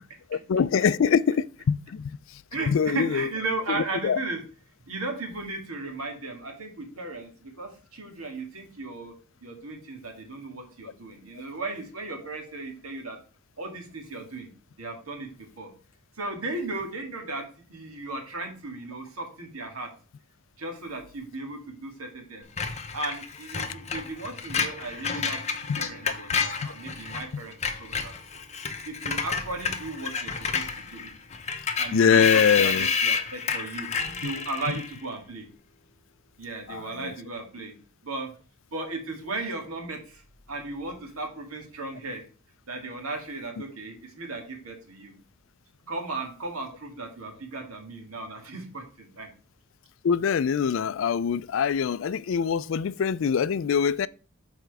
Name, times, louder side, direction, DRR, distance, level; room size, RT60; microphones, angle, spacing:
voice 1, 0.3-2.1 2.7-3.3 3.7-4.2 25.7-25.8 27.3-27.4 31.9-32.9 36.7-37.1 50.0-54.1, left 6 dB, 60° left, 0.3 m, -23 dB
voice 2, 2.5-4.4 4.9-9.1 9.4-13.2 13.6-15.7 16.2-17.4 17.7-19.9 20.6-22.5 22.9-25.4 25.8-28.1 28.9-31.1 31.8-33.9 34.2-35.5 36.4-37.7 38.0-38.3 38.7-40.2 40.5-42.2 42.7-45.1 45.9-49.3, right 2 dB, 80° right, 2.0 m, -36 dB
Screech, 22.6-27.2 27.5-35.0, left 5 dB, 30° left, 0.7 m, -30 dB
6.9 x 4.4 x 4.7 m
head